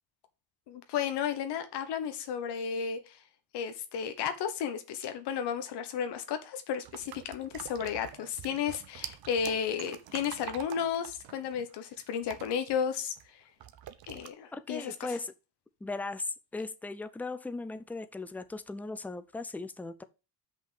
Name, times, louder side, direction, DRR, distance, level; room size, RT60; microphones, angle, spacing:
voice 1, 0.7-3.1 3.5-13.1 14.1-14.9, left 7 dB, 65° left, 1.2 m, -33 dB
sound 1, 6.8-13.3 13.6-14.3, right 10 dB, 55° right, 1.0 m, -46 dB
sound 2, 8.0-10.9 11.2-13.6, right 9 dB, 85° right, 1.5 m, -51 dB
voice 2, 14.5-15.3 15.8-20.0, left 3 dB, 5° left, 0.5 m, -38 dB
6.1 x 5.3 x 6.9 m
cardioid pair, 100°, 43 cm